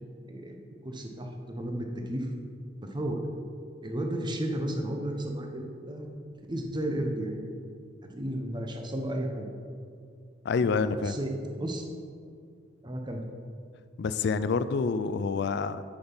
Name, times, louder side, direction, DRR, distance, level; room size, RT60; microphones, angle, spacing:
voice 1, 0.2-2.3 2.8-3.2 3.8-6.1 6.5-7.5 8.1-9.5 11.0-11.9 12.8-13.2, right 1 dB, 25° right, 2 dB, 0.9 m, -33 dB
voice 2, 10.4-11.2 14.0-15.8, left 4 dB, 65° left, 13 dB, 0.4 m, -27 dB
8.6 x 6.2 x 5.5 m, 2.3 s
head